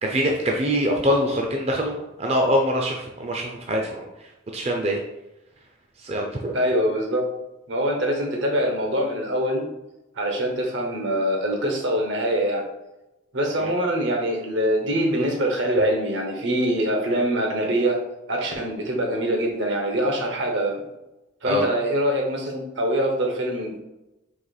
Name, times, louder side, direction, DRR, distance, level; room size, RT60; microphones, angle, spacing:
voice 1, 0.0-5.0 6.0-6.6 13.6-13.7 21.4-21.7, equal, 35° right, 1 dB, 0.4 m, -24 dB
voice 2, 6.5-7.3 7.7-9.6 10.2-12.6 13.3-18.0 18.3-20.8 21.4-23.8, right 1 dB, 75° right, 1 dB, 1.0 m, -24 dB
4.2 x 2.8 x 4.0 m, 0.96 s
head